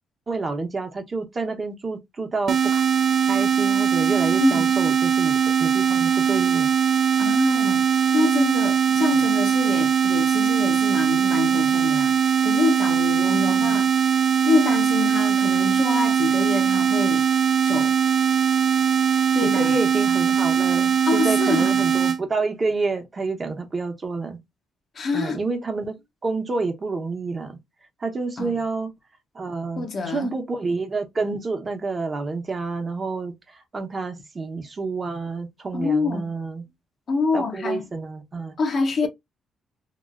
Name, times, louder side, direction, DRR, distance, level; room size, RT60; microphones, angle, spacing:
voice 1, 0.3-2.8 3.3-6.7 13.3-13.8 19.1-24.4 25.1-25.9 26.2-27.6 28.0-28.9 29.3-36.7 37.3-38.6, right 3 dB, 35° right, 0.9 m, -29 dB
sound 1, 2.5-22.2, right 8 dB, 55° right, 0.4 m, -20 dB
voice 2, 4.4-4.7 7.2-7.9 8.1-14.1 14.5-17.3 17.6-18.0 19.3-19.7 21.1-21.8 24.9-25.4 28.4-28.5 29.8-30.3 35.7-36.3 37.1-37.9 38.6-39.1, left 4 dB, 50° left, 0.8 m, -26 dB
3.0 x 2.7 x 2.4 m
cardioid pair, 90°, 0 cm